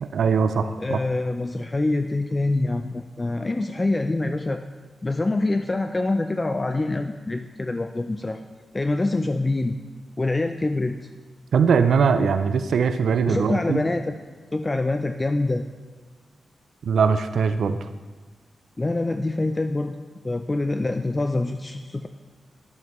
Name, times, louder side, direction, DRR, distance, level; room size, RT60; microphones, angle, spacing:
voice 1, 0.0-1.0 11.5-13.8 16.9-17.9, right 6 dB, 80° right, 9 dB, 0.3 m, -21 dB
voice 2, 0.8-4.6 5.0-8.4 8.7-9.8 10.2-11.0 13.3-14.2 14.5-15.7 18.8-19.9 20.2-22.1, left 2 dB, 25° left, 7 dB, 0.3 m, -25 dB
11.0 x 7.0 x 3.0 m, 1.3 s
cardioid pair, 85°, 0 cm